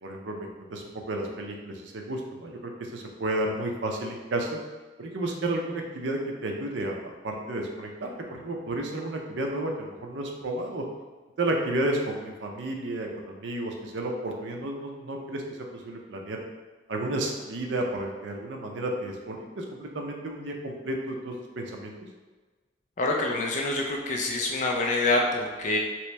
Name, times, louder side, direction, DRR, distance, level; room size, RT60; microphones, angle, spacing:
voice 1, 0.0-4.6 5.0-10.8 11.4-15.4 15.7-16.4 16.9-21.9, right 1 dB, 90° right, 1 dB, 0.6 m, -32 dB
voice 2, 23.0-25.8, left 2 dB, 40° left, 0 dB, 0.4 m, -26 dB
3.0 x 2.9 x 3.3 m, 1.3 s
head